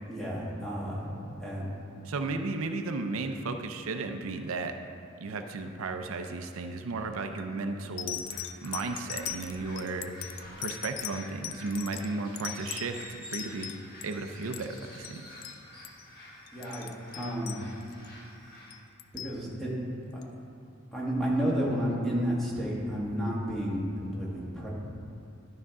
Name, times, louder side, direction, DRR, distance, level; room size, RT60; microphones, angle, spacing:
voice 1, 0.1-1.8 16.5-16.9 17.1-17.7 19.1-19.7 20.1-20.2 20.9-24.7, equal, ahead, -6 dB, 1.5 m, -31 dB
voice 2, 2.0-4.8 5.2-10.1 10.6-13.7 14.0-15.3, right 3 dB, 90° right, 6 dB, 0.5 m, -34 dB
sound 1, 7.1-7.4 8.0-14.1 14.4-14.8 15.0-15.2 15.4-15.6 15.8-16.1 16.5-18.1 18.7-19.4 20.2-20.3, left 12 dB, 80° left, 0.4 m, -39 dB
sound 2, 8.3-18.8, left 1 dB, 45° left, 1.6 m, -49 dB
11.5 x 5.8 x 3.6 m, 2.6 s
head